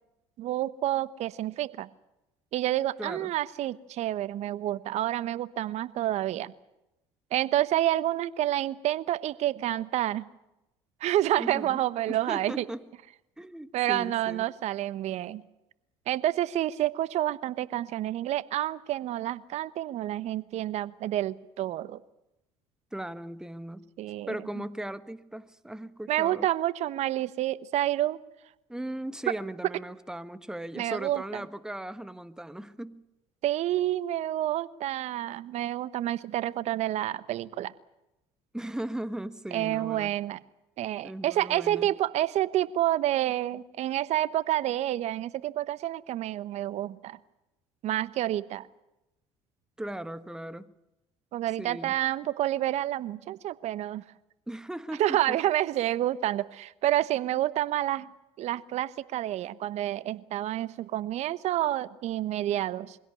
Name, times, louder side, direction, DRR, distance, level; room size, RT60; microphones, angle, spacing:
voice 1, 0.4-1.9 2.5-6.5 7.3-10.3 11.0-12.6 13.7-15.4 16.1-22.0 24.0-24.4 26.1-28.2 30.8-31.2 33.4-37.7 39.5-40.4 40.8-47.2 47.8-48.7 51.3-54.0 55.0-58.1 58.4-63.0, right 13 dB, 60° right, 1.1 m, -29 dB
voice 2, 3.0-3.3 11.4-11.8 12.1-12.9 13.4-14.5 22.9-23.9 24.3-26.5 28.7-33.0 38.5-40.2 41.0-41.9 49.8-50.7 51.6-52.0 54.5-55.4, right 1 dB, 5° right, 1.4 m, -38 dB
24.0 x 17.0 x 9.8 m
supercardioid pair, 80°, 13 cm